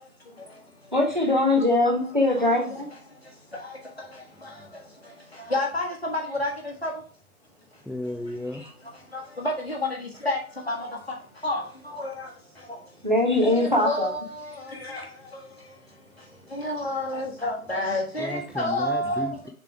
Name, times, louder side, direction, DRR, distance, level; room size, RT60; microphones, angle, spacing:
voice 1, 0.9-2.9 8.6-8.7 13.0-14.1, left 2 dB, 35° right, 0 dB, 1.2 m, -22 dB
voice 2, 2.4-2.7 5.5-6.9 9.1-10.4 10.7-10.8 11.4-12.3 13.5-15.0 16.5-19.3, left 1 dB, 45° left, -1 dB, 1.5 m, -29 dB
voice 3, 7.9-8.6 18.2-19.5, left 1 dB, 5° right, 2 dB, 0.4 m, -33 dB
6.7 x 3.4 x 4.6 m, 0.42 s
figure-of-eight pair, 180°, 44 cm